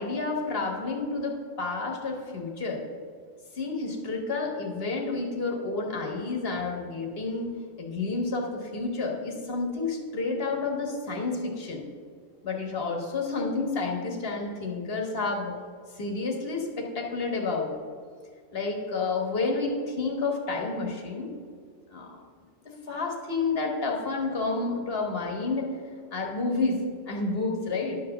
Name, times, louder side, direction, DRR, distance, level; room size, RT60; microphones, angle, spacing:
voice 1, 0.0-2.8 3.5-11.8 12.4-15.5 15.9-17.7 18.5-21.3 21.9-22.1 22.9-25.7 26.1-28.0, left 3 dB, 50° left, 1 dB, 1.6 m, -30 dB
11.5 x 4.7 x 6.6 m, 2.1 s
omnidirectional pair, 1.4 m